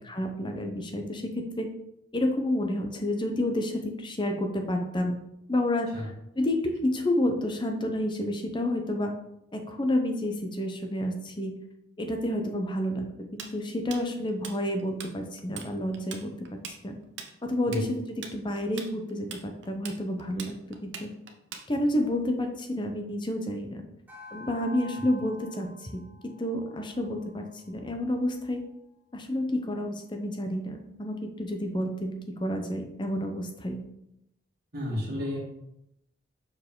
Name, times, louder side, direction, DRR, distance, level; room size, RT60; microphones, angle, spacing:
voice 1, 0.0-1.7 2.1-5.2 5.5-9.1 9.5-11.6 12.0-16.9 17.4-21.1 21.7-23.8 24.3-28.6 29.1-33.8, left 1 dB, 25° left, 5 dB, 0.7 m, -30 dB
Tools, 13.4-15.1 15.4-15.7 15.9-22.0, right 6 dB, 65° right, 0.8 m, -41 dB
sound 1, 24.1-28.7, left 2 dB, 10° right, 1.2 m, -49 dB
voice 2, 34.7-35.4, left 1 dB, 50° right, -6 dB, 1.7 m, -31 dB
6.5 x 4.7 x 3.8 m, 0.83 s
head